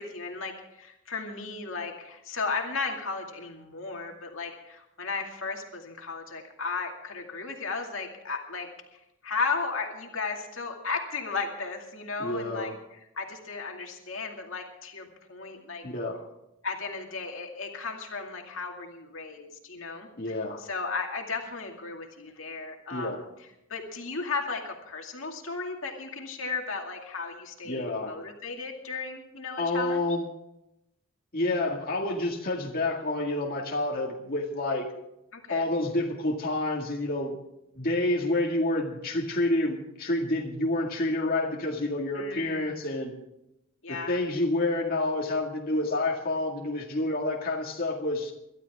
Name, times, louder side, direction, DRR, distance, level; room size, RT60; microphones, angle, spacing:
voice 1, 0.0-8.7 9.2-15.8 16.6-23.3 23.7-30.0 35.3-35.7 42.1-42.7 43.8-44.2, left 4 dB, 70° left, 2 dB, 2.4 m, -35 dB
voice 2, 12.2-12.8 15.8-16.3 20.2-20.6 22.9-23.2 27.6-28.2 29.6-30.3 31.3-34.9 35.5-37.4 37.8-43.1 43.9-48.3, left 2 dB, 45° left, -2 dB, 2.1 m, -28 dB
22.5 x 12.5 x 3.6 m, 0.86 s
head